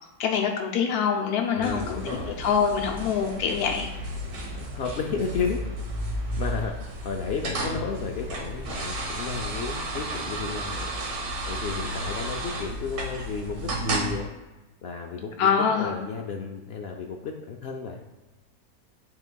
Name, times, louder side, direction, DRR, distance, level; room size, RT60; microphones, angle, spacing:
voice 1, 0.2-2.0 2.4-3.9 15.4-16.0, left 6 dB, 85° left, 2 dB, 1.2 m, -24 dB
voice 2, 1.5-2.4 4.5-5.6 6.3-6.7 7.0-10.9 11.5-14.3 14.8-18.0, left 5 dB, 70° left, 2 dB, 0.5 m, -33 dB
sound 1, 1.6-14.1, right 1 dB, 80° right, 1.5 m, -33 dB
10.5 x 4.0 x 2.2 m, 1.1 s
omnidirectional pair, 1.6 m